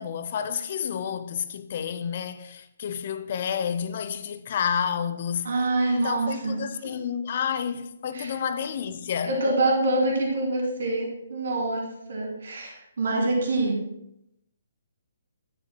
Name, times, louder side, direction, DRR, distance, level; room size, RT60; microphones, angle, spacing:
voice 1, 0.0-5.5 5.9-9.4 12.6-12.7, left 7 dB, 45° left, 0.6 m, -30 dB
voice 2, 5.4-6.5 8.1-8.3 9.2-13.8, right 2 dB, 60° right, 2.8 m, -26 dB
9.9 x 9.2 x 2.2 m
figure-of-eight pair, 135°, 0 cm